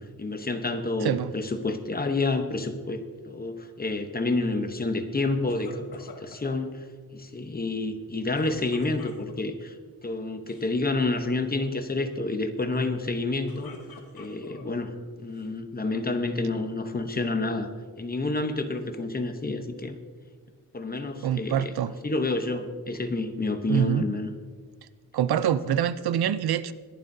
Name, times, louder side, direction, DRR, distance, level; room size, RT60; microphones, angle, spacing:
voice 1, 0.2-6.8 7.1-9.8 10.0-13.7 14.1-17.7 18.0-20.0 20.7-21.7 22.0-24.3, left 2 dB, 25° left, 7 dB, 0.9 m, -29 dB
voice 2, 1.0-1.3 21.2-21.9 23.7-24.1 25.1-26.7, right 9 dB, 80° right, 15 dB, 0.6 m, -25 dB
sound 1, 5.5-6.6 8.3-9.6 10.3-10.7 11.0-11.4 13.2-14.8 15.3-16.1, left 4 dB, 70° left, 1.5 m, -47 dB
21.0 x 11.0 x 2.7 m, 1.5 s
wide cardioid pair, 160°, 38 cm